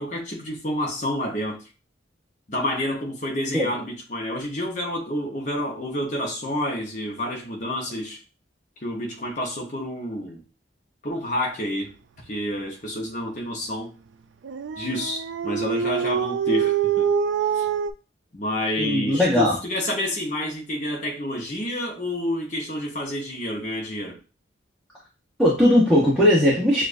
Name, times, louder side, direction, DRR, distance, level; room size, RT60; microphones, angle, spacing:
voice 1, 0.0-1.6 2.5-8.2 8.8-10.4 11.0-11.9 12.3-13.9 14.8-17.1 17.5-17.7 18.3-24.2, left 1 dB, 40° left, -1 dB, 0.9 m, -29 dB
Dog, 14.4-17.9, right 8 dB, 70° right, 0.4 m, -25 dB
voice 2, 18.8-19.5 25.4-26.8, left 1 dB, ahead, -8 dB, 0.9 m, -18 dB
6.9 x 2.4 x 2.6 m, 0.32 s
head